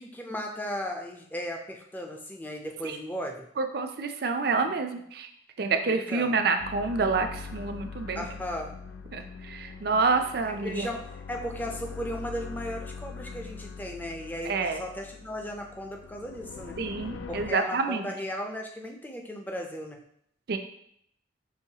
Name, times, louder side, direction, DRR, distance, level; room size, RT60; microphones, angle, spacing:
voice 1, 0.0-3.5 5.9-6.4 8.1-8.8 10.6-11.0 11.3-16.7 17.3-20.0, equal, 10° left, 2 dB, 0.4 m, -36 dB
voice 2, 3.6-5.3 5.6-8.3 9.1-10.9 14.4-14.8 16.8-18.1 20.5-20.6, right 4 dB, 50° right, 6 dB, 0.4 m, -28 dB
sound 1, 6.6-17.5, left 5 dB, 75° left, 0.3 m, -42 dB
6.2 x 3.0 x 2.8 m, 0.71 s
head